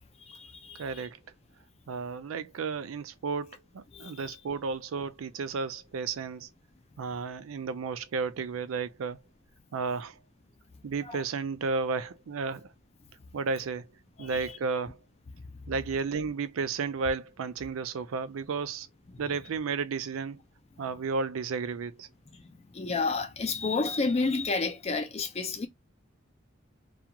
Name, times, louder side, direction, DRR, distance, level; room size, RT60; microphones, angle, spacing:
voice 1, 0.3-0.8 3.9-4.1 11.1-11.2 14.2-14.5 22.7-25.7, left 3 dB, 30° left, 0.4 m, -30 dB
voice 2, 0.8-1.2 1.9-6.5 7.0-9.2 9.7-10.2 10.8-12.7 13.3-13.9 14.2-15.0 15.7-18.9 19.2-20.4 20.8-22.1, right 4 dB, 85° right, 0.4 m, -33 dB
2.4 x 2.3 x 2.8 m
head